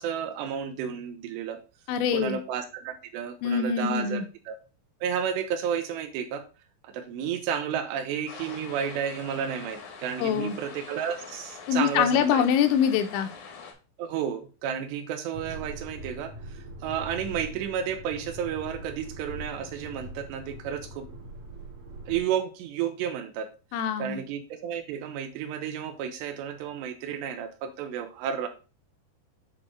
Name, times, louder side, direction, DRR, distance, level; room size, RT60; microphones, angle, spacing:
voice 1, 0.0-1.6 2.1-4.6 5.0-6.5 6.8-12.5 14.0-21.1 22.1-23.5 24.0-28.5, right 8 dB, 80° right, 9 dB, 2.7 m, -32 dB
voice 2, 1.9-2.4 3.4-4.3 10.2-10.6 11.7-13.3 23.7-24.2, left 8 dB, 85° left, 8 dB, 3.0 m, -24 dB
sound 1, 8.3-13.7, left 5 dB, 70° left, 1.9 m, -44 dB
sound 2, 15.3-22.2, right 1 dB, 60° right, 2.5 m, -42 dB
7.9 x 4.0 x 3.7 m, 0.33 s
omnidirectional pair, 5.2 m